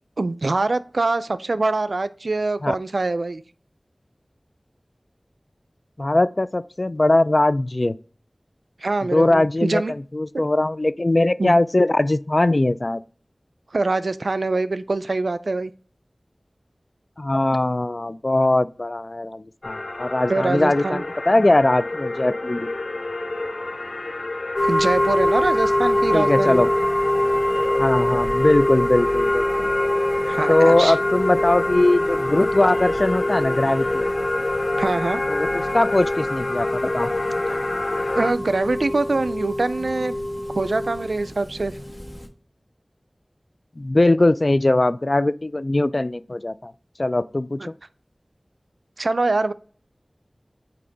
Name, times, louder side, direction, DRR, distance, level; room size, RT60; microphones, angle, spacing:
voice 1, 0.2-3.4 8.8-9.9 10.3-10.4 11.4-11.6 13.7-15.7 20.3-21.0 24.6-26.6 30.2-31.0 34.8-35.2 37.3-37.4 38.1-40.1 40.6-41.7 49.0-49.5, right 3 dB, 90° right, 0.3 m, -24 dB
voice 2, 6.0-7.9 9.1-13.0 17.2-22.7 26.1-26.7 27.8-29.7 30.5-34.1 35.3-37.1 43.8-46.7 47.0-47.8, left 2 dB, 50° left, 0.3 m, -20 dB
sound 1, 19.6-38.3, left 2 dB, 85° left, 0.6 m, -29 dB
sound 2, 24.5-42.3, left 1 dB, 10° left, 1.3 m, -24 dB
8.3 x 2.9 x 3.9 m
wide cardioid pair, 45°, 0 cm